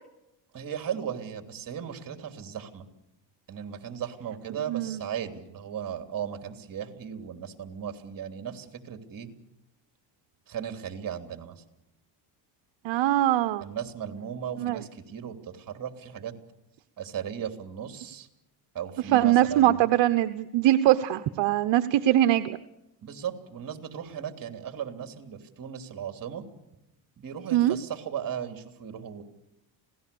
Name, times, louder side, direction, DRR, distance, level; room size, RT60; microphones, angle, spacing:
voice 1, 0.5-2.9 3.5-9.3 10.5-11.6 13.6-16.3 17.0-18.3 18.7-19.9 23.0-26.4 27.2-29.2, right 8 dB, 45° right, 6 dB, 3.2 m, -36 dB
voice 2, 4.7-5.0 12.8-13.6 14.6-14.8 19.1-22.6 27.5-27.8, right 14 dB, 65° right, 10 dB, 1.1 m, -22 dB
27.0 x 18.0 x 7.0 m, 0.91 s
cardioid pair, 95°, 48 cm